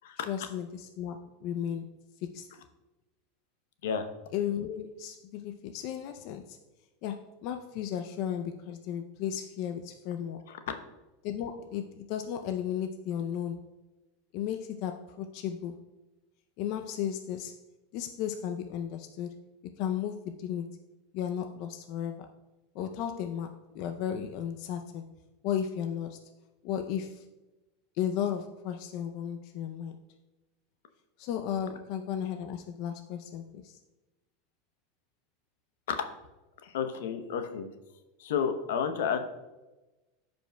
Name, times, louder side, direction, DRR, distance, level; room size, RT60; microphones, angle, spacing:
voice 1, 0.3-2.0 2.3-2.5 4.3-6.6 7.0-10.5 11.2-13.6 14.3-15.8 16.6-17.6 17.9-19.4 19.8-20.8 21.1-22.3 22.7-25.1 25.4-26.2 26.6-27.3 28.0-30.0 31.2-33.8, left 9 dB, 55° left, 6 dB, 0.5 m, -34 dB
voice 2, 36.6-37.7 38.2-39.2, left 7 dB, 80° left, 7 dB, 0.8 m, -31 dB
14.0 x 5.2 x 2.2 m, 1.1 s
supercardioid pair, 140°, 0 cm